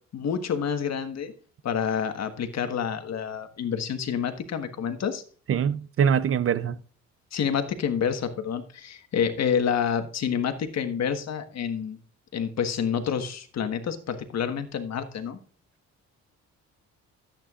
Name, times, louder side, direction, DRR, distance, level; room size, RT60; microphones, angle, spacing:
voice 1, 0.1-1.3 1.6-5.2 7.3-12.0 12.3-15.4, left 7 dB, 60° left, 1.4 m, -28 dB
voice 2, 5.5-6.8, right 8 dB, 45° right, 0.5 m, -23 dB
14.0 x 8.7 x 2.4 m
cardioid pair, 90°, 30 cm